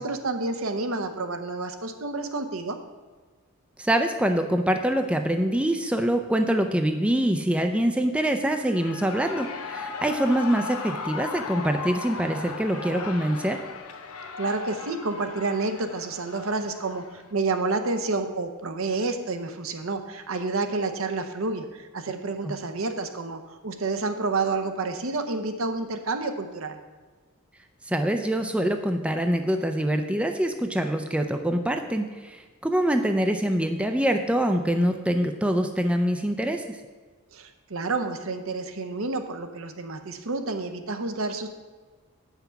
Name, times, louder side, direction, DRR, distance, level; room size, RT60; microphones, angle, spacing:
voice 1, 0.0-2.8 14.4-26.8 37.3-41.5, right 3 dB, 65° right, 7 dB, 0.8 m, -29 dB
voice 2, 3.8-13.6 22.4-22.5 27.8-36.8, right 1 dB, 5° right, 6 dB, 0.4 m, -25 dB
Shout / Cheering, 8.4-17.3, left 4 dB, 85° left, 0.9 m, -37 dB
8.2 x 5.8 x 5.7 m, 1.4 s
head